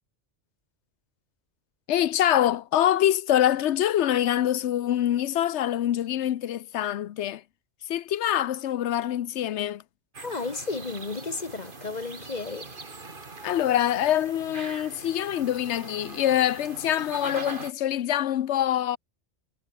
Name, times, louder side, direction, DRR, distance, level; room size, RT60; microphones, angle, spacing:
voice 1, 1.9-7.4 7.9-9.8 13.4-19.0, left 11 dB, 75° left, 1.0 m, -25 dB
sound 1, 10.1-17.7, right 3 dB, 45° right, 2.4 m, -42 dB
voice 2, 10.2-12.7, left 3 dB, 35° left, 1.9 m, -33 dB
omnidirectional pair, 1.2 m